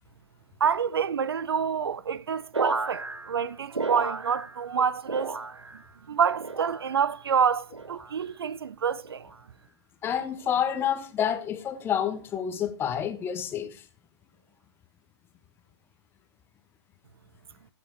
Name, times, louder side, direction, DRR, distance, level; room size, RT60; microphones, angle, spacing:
voice 1, 0.6-5.4 6.1-9.2, right 7 dB, 55° right, 0.5 m, -27 dB
sound 1, 2.5-4.8 5.0-5.9 6.4-7.1 7.7-8.2 9.0-9.4 10.4-10.7, right 4 dB, 75° right, 0.9 m, -33 dB
voice 2, 10.0-13.8, left 9 dB, 15° left, 1.1 m, -28 dB
14.5 x 7.3 x 4.6 m
figure-of-eight pair, 120°, 15 cm